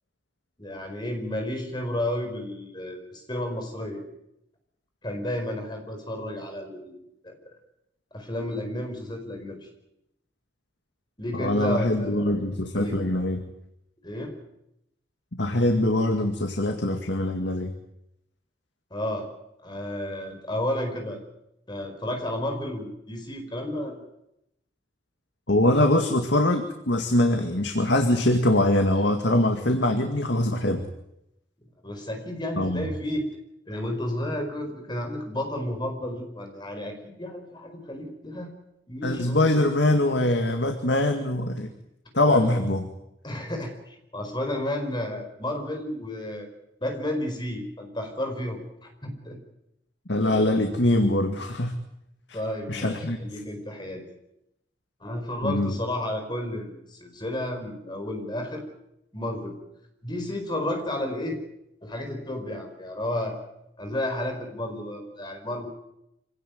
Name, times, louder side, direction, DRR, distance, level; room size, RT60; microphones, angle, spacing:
voice 1, 0.6-4.0 5.0-7.0 7.2-7.3 8.1-9.7 11.2-12.3 12.7-13.0 14.0-14.4 18.9-19.3 19.6-21.2 21.7-24.0 31.8-33.3 33.7-38.5 38.9-39.5 42.2-42.5 43.2-46.5 46.8-49.4 50.3-50.4 52.3-54.0 55.0-58.7 59.1-59.6 60.0-61.4 61.8-63.4 63.8-65.7, left 1 dB, 25° left, 4 dB, 4.8 m, -32 dB
voice 2, 11.3-13.4 15.4-17.7 25.5-30.9 32.6-32.9 39.0-41.7 42.1-42.9 50.1-51.7 52.3-52.4 52.7-53.2 55.4-55.7, left 1 dB, 70° left, 5 dB, 2.1 m, -23 dB
25.5 x 17.5 x 9.4 m, 0.84 s
head